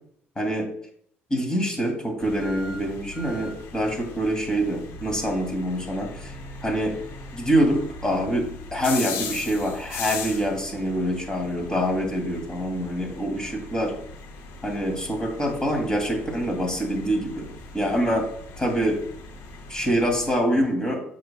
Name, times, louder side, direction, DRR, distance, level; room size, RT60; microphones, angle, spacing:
voice 1, 0.4-0.7 1.3-6.3 6.6-7.0 7.3-13.9 14.6-17.5 17.7-18.3 18.6-19.0 19.7-21.0, equal, 15° left, 1 dB, 2.6 m, -25 dB
sound 1, 2.2-20.4, left 4 dB, 75° left, 1.3 m, -39 dB
9.4 x 6.9 x 2.3 m, 0.62 s
cardioid pair, 100°, 5 cm